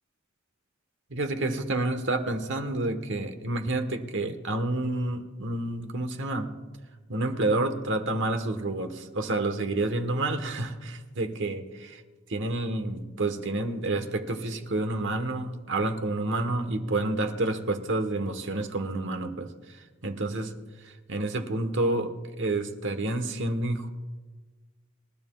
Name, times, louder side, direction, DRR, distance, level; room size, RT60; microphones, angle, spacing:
voice 1, 1.1-6.5 7.1-12.0 12.3-20.5 21.1-23.9, right 2 dB, 65° right, 7 dB, 1.2 m, -29 dB
27.0 x 12.5 x 2.3 m, 1.3 s
head